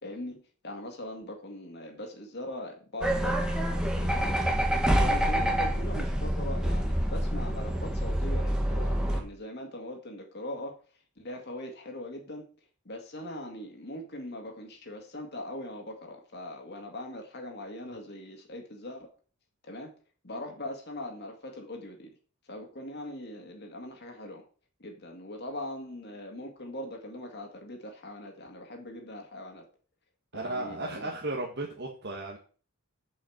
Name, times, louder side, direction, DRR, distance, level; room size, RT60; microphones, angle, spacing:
voice 1, 0.0-10.8 11.2-12.5 12.9-19.1 19.7-19.9 20.2-22.1 22.5-24.4 24.8-29.7 30.3-31.1, left 1 dB, 50° left, 2 dB, 2.2 m, -41 dB
sound 1, 3.0-9.2, right 1 dB, 5° right, 1.4 m, -27 dB
voice 2, 30.3-32.4, right 2 dB, 55° right, 0 dB, 1.6 m, -35 dB
8.3 x 5.5 x 7.2 m, 0.40 s
head